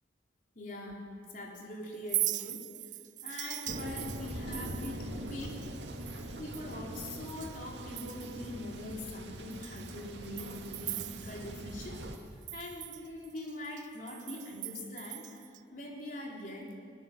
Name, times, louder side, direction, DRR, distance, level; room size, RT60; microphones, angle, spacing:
voice 1, 0.5-2.7 3.2-5.7 6.2-12.1 12.5-16.8, left 1 dB, 45° left, -1 dB, 4.0 m, -43 dB
Chink clink, 1.9-7.6 7.9-8.5 8.9-9.0 9.5-11.9 12.1-15.6, right 15 dB, 40° right, 0.5 m, -40 dB
Thunder, 3.7-12.2, right 1 dB, 70° right, 2.1 m, -42 dB
21.5 x 20.5 x 7.5 m, 2.2 s
head